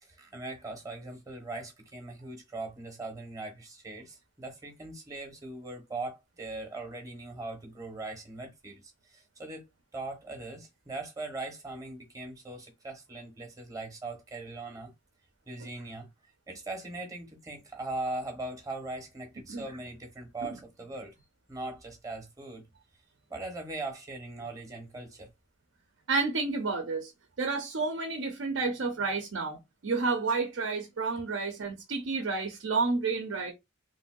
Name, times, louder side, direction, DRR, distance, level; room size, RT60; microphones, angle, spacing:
voice 1, 0.0-8.8 9.1-9.6 9.9-14.9 15.5-16.1 16.5-21.2 21.5-22.7 23.3-25.3, right 2 dB, 20° right, 0.8 m, -40 dB
voice 2, 26.1-27.1 27.4-33.5, right 4 dB, 80° right, 0.6 m, -30 dB
3.2 x 2.6 x 2.2 m
head